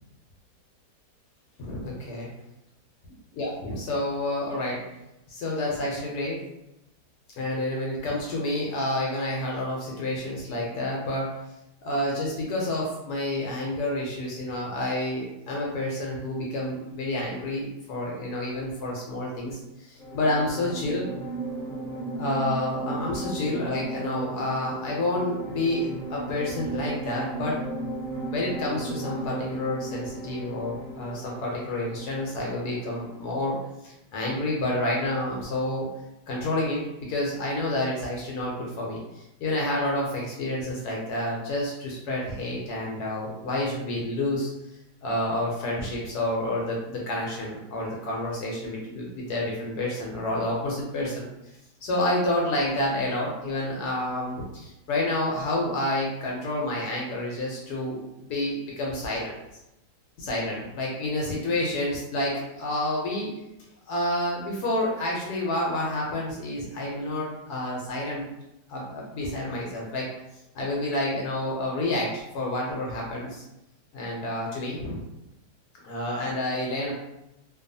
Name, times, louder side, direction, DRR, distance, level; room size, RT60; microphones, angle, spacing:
voice 1, 1.6-2.3 3.3-4.8 5.3-6.4 7.4-11.3 11.8-21.1 22.2-27.6 28.3-33.6 33.8-35.9 36.3-36.8 37.1-44.5 45.0-59.4 60.2-63.3 63.9-68.3 68.7-70.1 70.5-73.4 73.9-75.0 75.8-76.9, left 1 dB, 75° left, -3 dB, 1.1 m, -29 dB
sound 1, 20.0-33.3, right 1 dB, 40° left, 0.7 m, -35 dB
2.7 x 2.3 x 2.6 m, 0.90 s
omnidirectional pair, 1.8 m